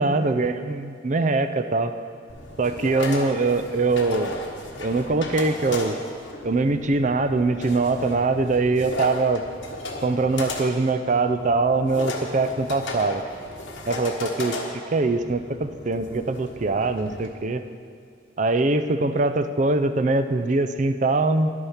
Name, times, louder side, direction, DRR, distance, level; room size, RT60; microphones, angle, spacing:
voice 1, 0.0-1.9 2.6-4.4 4.8-6.0 6.4-9.4 10.0-13.2 13.9-14.6 14.9-17.6 18.4-21.5, right 3 dB, 40° right, 10 dB, 0.4 m, -22 dB
sound 1, 2.3-17.3, left 2 dB, 65° left, 1.3 m, -35 dB
11.0 x 8.8 x 5.7 m, 2.3 s
head